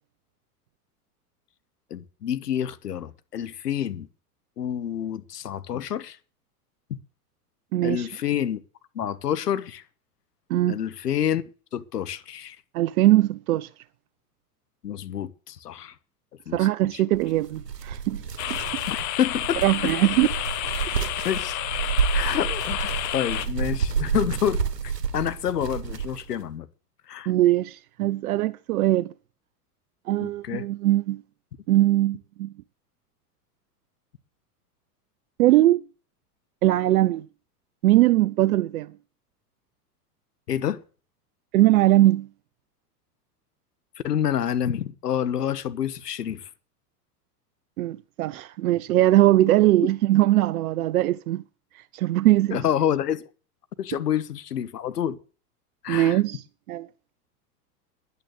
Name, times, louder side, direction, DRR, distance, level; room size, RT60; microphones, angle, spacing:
voice 1, 1.9-4.1 4.6-6.2 7.8-8.6 8.9-9.8 10.7-11.4 11.7-12.6 14.8-15.9 16.5-17.0 18.9-19.9 21.2-21.6 22.1-26.7 27.1-27.3 30.2-30.7 40.5-40.8 44.0-46.5 52.5-53.2 53.8-55.2 55.8-56.2, left 10 dB, 80° left, 1.3 m, -28 dB
voice 2, 7.7-8.1 10.5-10.8 12.7-13.7 16.5-18.2 18.5-18.6 19.6-20.3 27.3-29.1 30.1-31.2 31.7-32.5 35.4-35.8 36.6-37.3 37.8-38.9 41.5-42.3 47.8-51.4 51.7-52.6 55.9-56.9, right 15 dB, 65° right, 0.7 m, -21 dB
sound 1, 17.1-26.4, right 6 dB, 90° right, 1.3 m, -30 dB
sound 2, 18.4-23.5, left 14 dB, 35° left, 1.3 m, -30 dB
11.0 x 9.5 x 7.9 m
hypercardioid pair, 90°, 47 cm